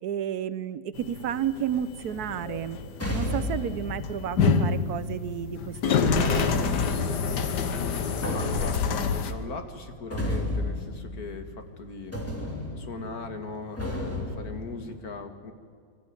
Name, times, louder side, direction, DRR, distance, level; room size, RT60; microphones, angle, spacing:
voice 1, 0.0-2.8 3.1-6.6, right 9 dB, 70° right, 15 dB, 1.2 m, -32 dB
sound 1, 1.0-9.3, left 5 dB, 80° left, 1.7 m, -27 dB
sound 2, 2.1-5.5 6.4-11.8 12.1-14.9, left 1 dB, 10° left, 3.2 m, -34 dB
voice 2, 8.3-12.2 12.8-15.5, left 3 dB, 60° left, 6 dB, 2.2 m, -39 dB
23.0 x 14.0 x 9.6 m, 2.2 s
omnidirectional pair, 1.8 m